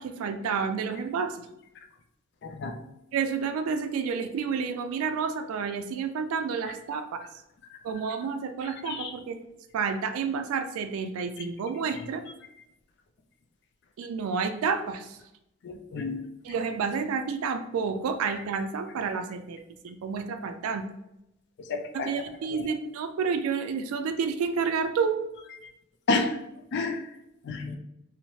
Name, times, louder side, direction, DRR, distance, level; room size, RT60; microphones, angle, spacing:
voice 1, 0.0-1.4 3.1-7.2 7.8-9.4 9.7-12.2 14.0-15.2 16.4-20.8 21.9-25.2, right 5 dB, 85° right, 7 dB, 0.3 m, -30 dB
voice 2, 2.4-2.8 8.9-9.1 15.6-16.2 21.7-22.1 26.1-26.4 26.7-27.0 27.5-27.8, left 3 dB, 50° left, 6 dB, 0.3 m, -29 dB
3.0 x 2.0 x 2.7 m, 0.85 s
head